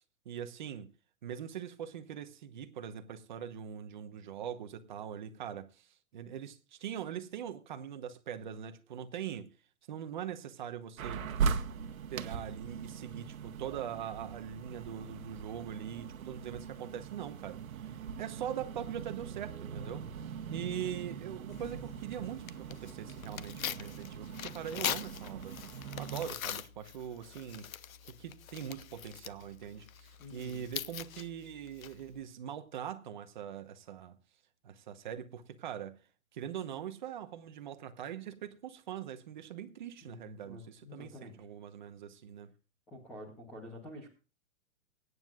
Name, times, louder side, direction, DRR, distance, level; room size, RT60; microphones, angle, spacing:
voice 1, 0.2-0.9 1.2-9.5 9.9-11.3 12.1-17.9 18.2-25.6 26.0-27.7 28.0-34.2 34.6-36.0 36.3-42.5, right 9 dB, 35° right, 1.0 m, -42 dB
sound 1, 11.0-26.3, right 6 dB, 80° right, 1.3 m, -40 dB
voice 2, 20.5-20.9 30.2-30.6 40.0-41.3 42.9-44.1, left 1 dB, 5° left, 0.6 m, -49 dB
Tearing, 21.5-32.2, left 10 dB, 80° left, 0.9 m, -43 dB
24.0 x 9.4 x 2.4 m
hypercardioid pair, 175°, 41 cm